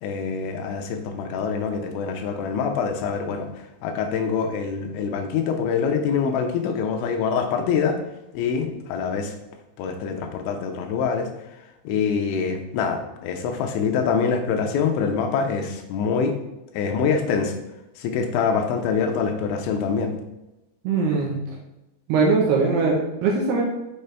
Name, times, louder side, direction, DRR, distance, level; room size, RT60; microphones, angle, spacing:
voice 1, 0.0-8.0 8.3-9.3 9.8-11.3 11.8-16.4 16.7-17.5 18.0-20.1, left 6 dB, 80° left, 5 dB, 3.0 m, -25 dB
voice 2, 20.8-21.4 22.1-23.6, right 4 dB, 75° right, -1 dB, 2.6 m, -21 dB
6.9 x 6.7 x 3.3 m, 0.97 s
omnidirectional pair, 5.5 m